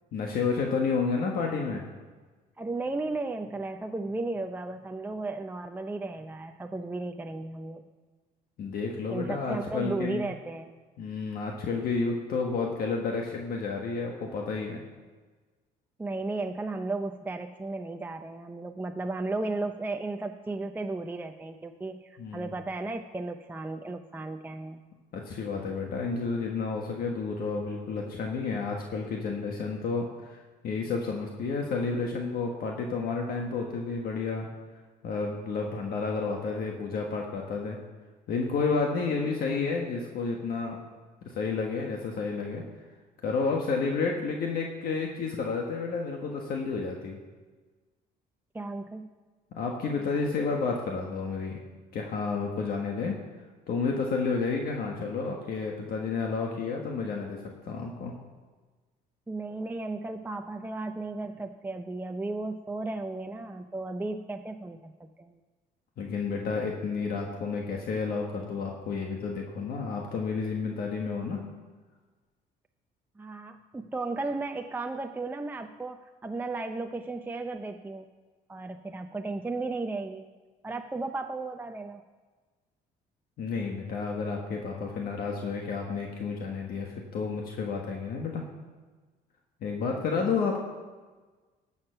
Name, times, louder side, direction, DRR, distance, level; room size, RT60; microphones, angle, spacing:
voice 1, 0.1-1.8 8.6-10.3 11.0-14.8 22.2-22.5 25.1-34.5 35.0-37.8 38.3-40.8 41.2-42.6 43.2-47.2 49.5-51.6 51.9-53.2 53.7-58.1 66.0-71.4 83.4-88.4 89.6-90.6, left 4 dB, 60° left, 1 dB, 1.5 m, -31 dB
voice 2, 2.6-7.9 9.1-10.7 16.0-24.8 48.5-49.1 59.3-65.4 73.2-78.1 78.5-80.3 80.6-82.0, right 2 dB, 10° right, 5 dB, 0.5 m, -35 dB
13.5 x 7.3 x 5.8 m, 1.3 s
cardioid pair, 110°, 17 cm